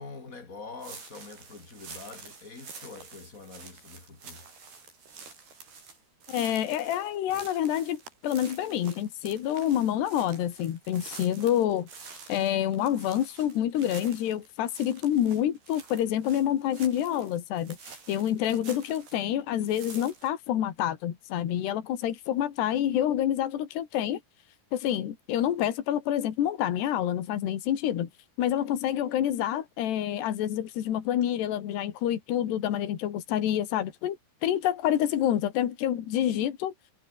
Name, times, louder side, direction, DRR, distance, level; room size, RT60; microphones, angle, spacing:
voice 1, 0.0-4.4, left 4 dB, 20° left, 3.4 m, -45 dB
sound 1, 0.8-19.3 19.6-20.3, right 5 dB, 70° right, 9.1 m, -48 dB
voice 2, 6.3-11.9 12.3-24.2 24.7-28.1 28.4-34.2 34.4-36.7, left 11 dB, 80° left, 4.3 m, -28 dB
omnidirectional pair, 4.8 m